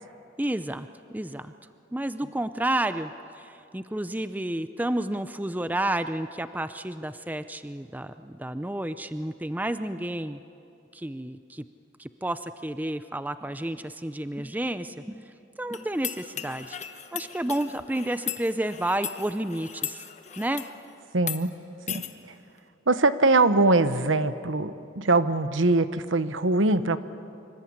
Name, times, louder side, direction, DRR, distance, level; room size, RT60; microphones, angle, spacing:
voice 1, 0.4-1.5 1.9-3.1 3.4-10.4 10.9-11.7 12.0-16.8 17.1-20.0 20.4-20.7, right 1 dB, 10° right, 11 dB, 0.5 m, -31 dB
sound 1, 15.7-20.8 21.2-21.4 21.9-22.1, left 9 dB, 35° left, 1.1 m, -37 dB
voice 2, 21.1-21.5 21.9-22.0 22.9-27.0, right 2 dB, 70° right, 12 dB, 1.1 m, -22 dB
25.5 x 25.5 x 8.7 m, 2.6 s
head